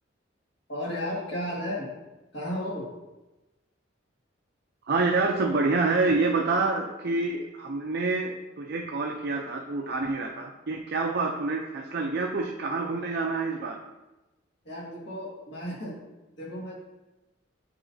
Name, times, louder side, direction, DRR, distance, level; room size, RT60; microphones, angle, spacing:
voice 1, 0.7-1.9 2.3-2.9 14.6-16.0 16.4-16.7, left 1 dB, 60° left, -5 dB, 2.0 m, -33 dB
voice 2, 4.8-13.8, right 3 dB, 55° right, 1 dB, 0.5 m, -27 dB
8.8 x 5.6 x 2.7 m, 1.1 s
head